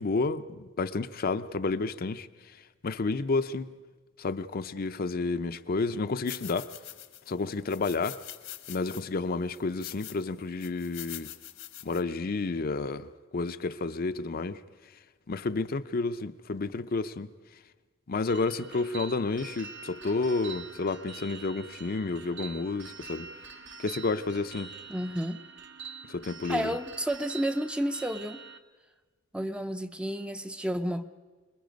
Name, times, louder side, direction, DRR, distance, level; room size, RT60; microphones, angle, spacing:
voice 1, 0.0-2.3 2.8-3.7 4.2-6.7 7.3-8.2 8.7-11.3 11.8-13.1 13.3-14.6 15.3-17.3 18.1-23.3 23.8-24.7 26.1-26.7, left 3 dB, 45° left, 0.6 m, -30 dB
sound 1, 6.3-7.3 7.7-9.0 9.5-10.2 10.6-12.0, left 14 dB, 75° left, 1.3 m, -44 dB
sound 2, 18.3-28.6, right 5 dB, 60° right, 1.1 m, -45 dB
voice 2, 24.9-25.4 26.5-28.4 29.3-31.0, equal, 5° right, 0.5 m, -31 dB
26.0 x 21.5 x 5.2 m
head